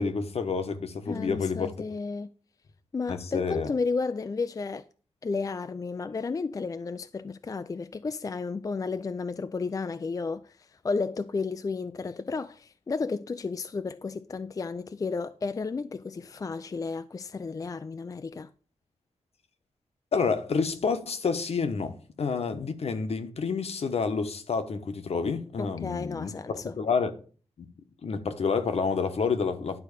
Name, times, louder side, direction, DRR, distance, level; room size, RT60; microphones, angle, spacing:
voice 1, 0.0-1.9 3.1-3.7 20.1-26.3 26.8-27.1 27.6-27.7 28.0-29.8, left 5 dB, 60° left, 1.1 m, -29 dB
voice 2, 1.1-2.3 2.9-4.9 5.2-18.5 25.6-26.7, left 4 dB, 30° left, 0.3 m, -32 dB
11.0 x 3.9 x 6.6 m
wide cardioid pair, 110°, 12 cm